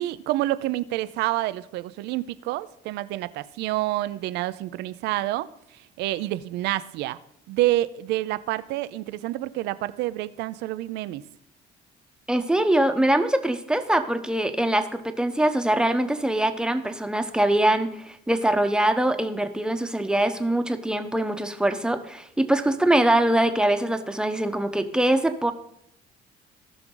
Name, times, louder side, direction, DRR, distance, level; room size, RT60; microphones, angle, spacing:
voice 1, 0.0-5.5 6.0-7.2 7.5-11.2, right 16 dB, 90° right, 0.5 m, -28 dB
voice 2, 12.3-25.5, right 1 dB, 5° right, 0.9 m, -23 dB
18.0 x 6.1 x 3.9 m
cardioid pair, 110°, 17 cm